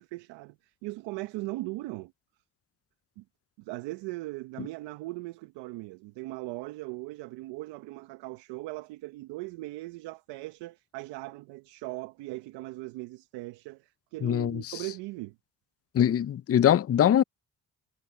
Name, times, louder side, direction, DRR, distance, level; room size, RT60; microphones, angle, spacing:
voice 1, 0.0-2.1 3.2-3.3 3.6-15.4, right 20 dB, 85° right, 1.1 m, -39 dB
voice 2, 14.2-14.7 15.9-17.2, left 10 dB, 35° left, 0.6 m, -22 dB
supercardioid pair, 60°, 42 cm